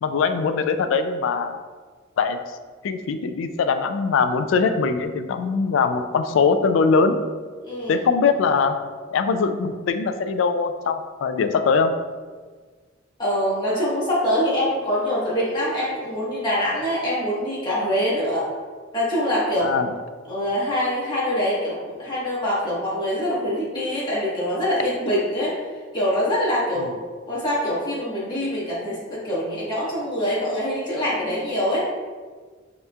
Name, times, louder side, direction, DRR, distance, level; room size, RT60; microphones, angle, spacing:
voice 1, 0.0-1.6 2.2-2.4 2.8-7.2 7.9-8.8 9.1-11.9 19.6-19.9, left 5 dB, 70° left, 8 dB, 0.3 m, -21 dB
voice 2, 7.6-8.0 13.2-18.5 18.9-19.7 20.3-25.6 25.9-26.9 27.3-31.8, equal, 25° left, -8 dB, 1.3 m, -24 dB
5.4 x 3.0 x 2.3 m, 1.5 s
head